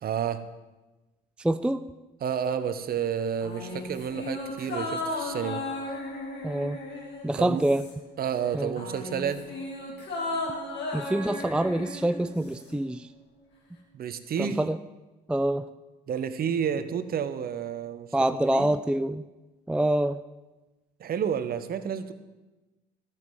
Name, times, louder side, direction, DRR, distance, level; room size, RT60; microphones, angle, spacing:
voice 1, 0.0-0.4 2.2-5.6 7.4-7.6 8.2-9.4 13.9-14.6 16.1-18.1 18.5-18.7 21.0-22.1, right 8 dB, 45° right, 11 dB, 1.1 m, -30 dB
voice 2, 1.4-1.8 6.4-6.8 7.2-7.8 8.5-8.7 10.9-13.1 14.4-14.8 15.3-15.7 18.1-19.2 19.7-20.2, right 1 dB, 5° right, 12 dB, 0.4 m, -26 dB
sound 1, 3.4-8.2 8.4-12.8 13.0-13.1, left 2 dB, 55° left, 3.4 m, -35 dB
14.0 x 7.6 x 7.5 m, 1.1 s
hypercardioid pair, 55°, 21 cm